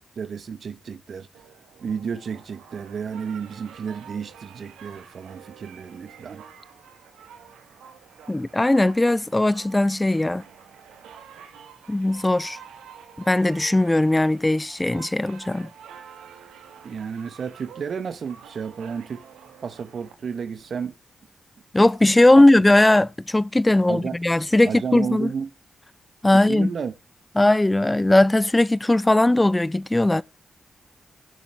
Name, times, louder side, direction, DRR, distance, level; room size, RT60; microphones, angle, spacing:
voice 1, 0.1-1.3 1.8-6.4 16.8-19.2 19.6-20.9 22.4-22.5 23.9-24.2 24.6-25.5 26.3-26.9, right 6 dB, 65° right, 1.6 m, -32 dB
sound 1, 1.3-20.7, right 8 dB, 90° right, 1.9 m, -47 dB
voice 2, 8.3-10.4 11.9-12.6 13.3-15.7 21.7-25.3 26.2-26.7 27.4-30.2, left 1 dB, 20° left, 0.5 m, -19 dB
16.0 x 7.3 x 4.9 m
supercardioid pair, 40°, 0 cm